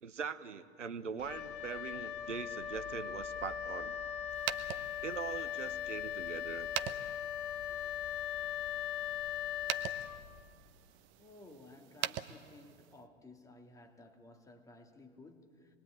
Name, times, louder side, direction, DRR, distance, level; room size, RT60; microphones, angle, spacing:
voice 1, 0.0-3.9 5.0-6.7, right 6 dB, 80° right, 1.2 m, -42 dB
Wind instrument woodwind instrument, 1.2-10.7, left 10 dB, 45° left, 1.6 m, -39 dB
sound 1, 4.3-13.0, right 12 dB, 35° right, 1.0 m, -44 dB
voice 2, 11.2-15.8, left 2 dB, 10° left, 2.4 m, -56 dB
27.0 x 21.5 x 9.0 m
figure-of-eight pair, 100°, 36 cm